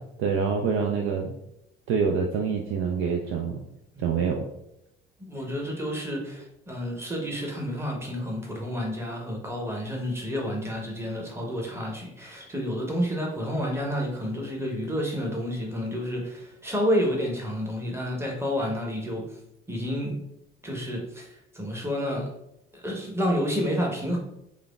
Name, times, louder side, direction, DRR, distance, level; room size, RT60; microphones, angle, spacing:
voice 1, 0.2-1.3 1.9-3.6 4.0-4.5, right 6 dB, 45° right, 1 dB, 0.4 m, -26 dB
voice 2, 5.2-19.2 19.7-20.2 20.6-21.3 21.5-22.3 22.7-24.2, equal, 10° right, 0 dB, 0.9 m, -30 dB
4.9 x 2.1 x 2.3 m, 0.80 s
figure-of-eight pair, 55°, 31 cm